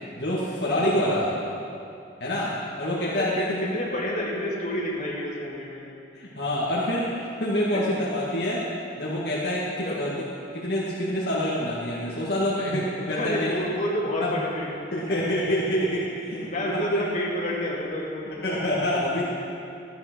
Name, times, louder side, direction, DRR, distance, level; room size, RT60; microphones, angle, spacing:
voice 1, 0.2-1.4 2.2-3.6 6.1-8.6 9.0-10.1 10.5-13.5 14.2-14.3 14.9-17.1 18.4-19.2, left 1 dB, 60° left, -7 dB, 1.9 m, -26 dB
voice 2, 3.0-5.8 7.7-8.1 9.8-10.0 13.1-14.9 16.3-18.4, equal, 40° left, -5 dB, 2.7 m, -30 dB
14.0 x 9.4 x 6.1 m, 2.6 s
head